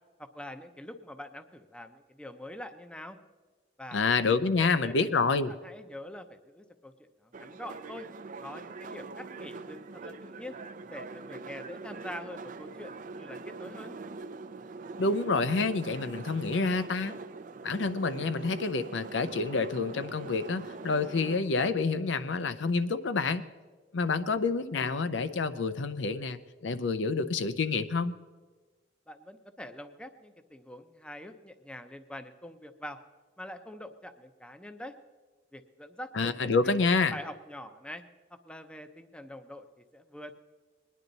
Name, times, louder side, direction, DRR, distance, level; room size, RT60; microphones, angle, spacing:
voice 1, 0.2-3.2 3.8-4.0 4.3-4.9 5.5-8.1 8.4-10.6 10.9-13.9 29.1-33.0 33.4-35.0 35.5-36.9 37.1-38.0 38.3-40.3, left 1 dB, 5° left, 8 dB, 0.6 m, -45 dB
voice 2, 3.9-5.5 15.0-17.2 17.6-23.4 23.9-28.1 36.1-37.1, left 4 dB, 75° left, 11 dB, 0.6 m, -28 dB
sound 1, 7.3-21.4, right 3 dB, 45° right, 0.5 m, -43 dB
21.0 x 10.5 x 4.0 m, 1.3 s
head